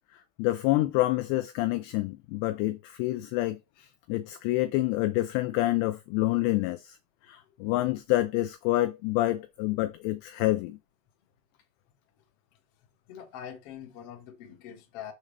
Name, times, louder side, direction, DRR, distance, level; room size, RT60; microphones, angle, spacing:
voice 1, 0.4-7.0 7.3-10.8, left 17 dB, 85° left, 2.4 m, -27 dB
voice 2, 13.1-15.1, left 9 dB, 70° left, 1.4 m, -44 dB
7.3 x 6.3 x 3.3 m
omnidirectional pair, 5.5 m